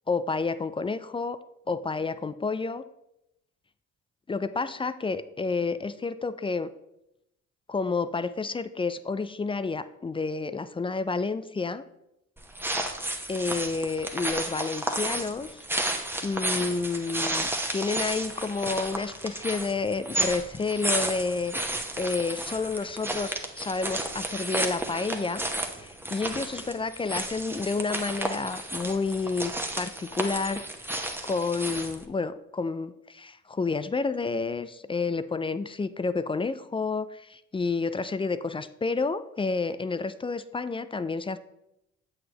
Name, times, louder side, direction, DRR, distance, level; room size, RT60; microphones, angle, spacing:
voice 1, 0.1-1.4 1.7-2.8 4.3-6.7 7.7-11.8 13.3-15.6 16.2-21.5 22.0-25.4 25.8-30.6 31.2-41.4, left 4 dB, 15° left, 14 dB, 0.4 m, -30 dB
sound 1, 12.4-32.0, right 1 dB, 5° right, 1.0 m, -32 dB
7.6 x 6.4 x 2.9 m, 0.83 s
hypercardioid pair, 45°, 35 cm